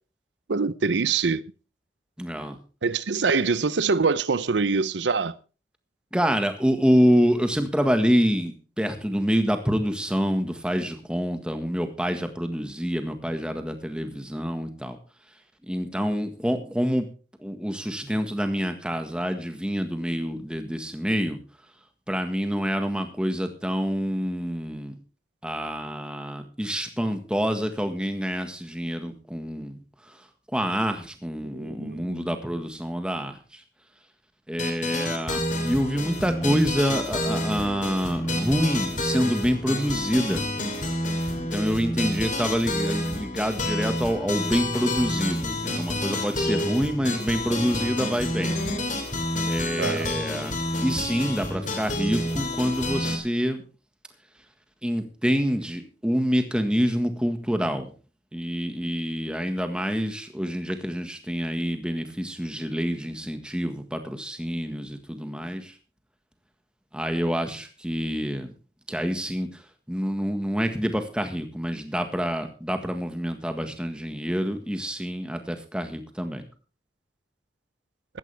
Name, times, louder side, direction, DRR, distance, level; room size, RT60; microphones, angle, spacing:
voice 1, 0.5-1.4 2.8-5.3 31.4-32.3 49.8-50.1, right 4 dB, 90° right, 0.7 m, -24 dB
voice 2, 2.2-2.6 6.1-15.0 15.7-17.1 17.4-21.4 22.1-24.9 25.4-29.8 30.1-30.2 30.5-33.6 34.5-40.4 41.3-48.6 49.5-50.5 50.8-53.6 54.8-57.9 58.3-65.7 66.9-68.5 68.9-69.6 69.9-76.4, equal, 5° right, 1.6 m, -27 dB
sound 1, 34.6-53.2, left 1 dB, 45° left, 2.7 m, -29 dB
15.5 x 13.5 x 3.4 m
head